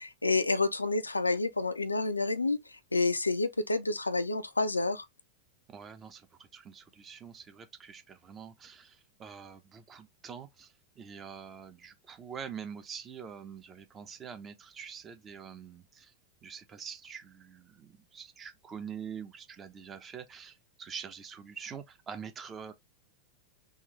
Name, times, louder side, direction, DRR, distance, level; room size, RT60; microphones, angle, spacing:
voice 1, 0.0-5.1, left 3 dB, 80° left, 0.4 m, -29 dB
voice 2, 5.7-16.1 16.4-22.7, right 7 dB, 25° right, 0.8 m, -45 dB
3.7 x 2.6 x 3.1 m
figure-of-eight pair, 90°, 0 cm